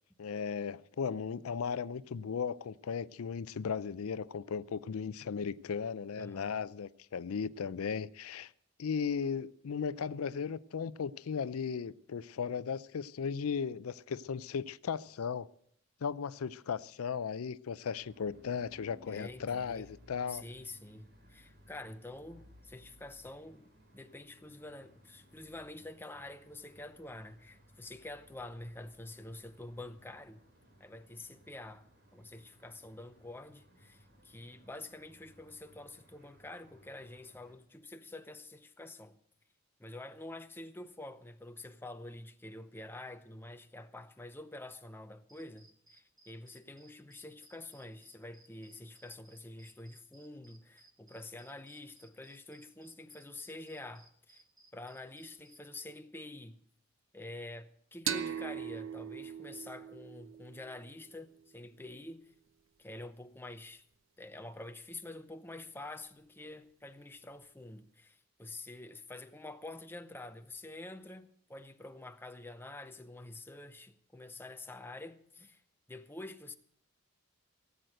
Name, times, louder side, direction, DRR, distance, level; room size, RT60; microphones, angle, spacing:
voice 1, 0.2-8.5 8.8-15.5 16.0-20.4, left 6 dB, 85° left, 0.5 m, -36 dB
voice 2, 6.2-6.6 19.1-19.9 20.3-30.4 30.8-31.9 32.1-39.2 39.8-54.4 54.7-56.6 57.1-62.3 62.8-63.8 64.2-75.6 75.9-76.6, left 2 dB, 10° left, 0.7 m, -47 dB
sound 1, 18.0-37.5, equal, 50° right, 3.1 m, -62 dB
sound 2, 45.3-55.6, right 2 dB, 15° right, 1.2 m, -63 dB
sound 3, 58.1-61.4, right 8 dB, 65° right, 0.7 m, -40 dB
17.5 x 7.9 x 7.9 m
head